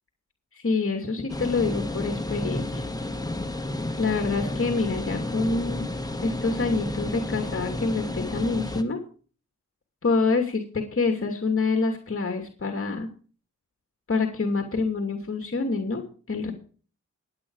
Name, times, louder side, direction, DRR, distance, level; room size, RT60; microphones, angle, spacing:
voice 1, 0.5-2.8 4.0-5.8 6.2-9.0 10.0-13.1 14.1-16.0 16.3-16.5, left 3 dB, 50° left, 4 dB, 2.7 m, -26 dB
sound 1, 1.3-8.8, left 1 dB, 15° left, 2.1 m, -31 dB
21.0 x 8.5 x 4.8 m, 0.40 s
cardioid pair, 70°, 29 cm